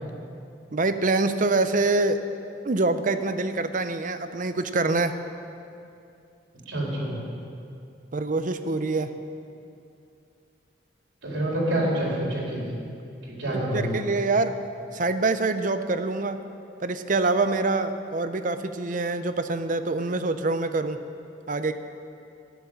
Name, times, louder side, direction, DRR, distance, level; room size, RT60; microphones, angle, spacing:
voice 1, 0.7-2.2 2.6-5.2 8.1-9.1 13.5-14.5 14.9-16.4 16.8-21.0 21.5-21.7, right 3 dB, 45° right, 10 dB, 0.6 m, -25 dB
voice 2, 6.7-7.2 11.2-12.8 13.2-13.9, right 1 dB, 80° right, -4 dB, 4.0 m, -27 dB
13.5 x 10.5 x 7.0 m, 2.5 s
head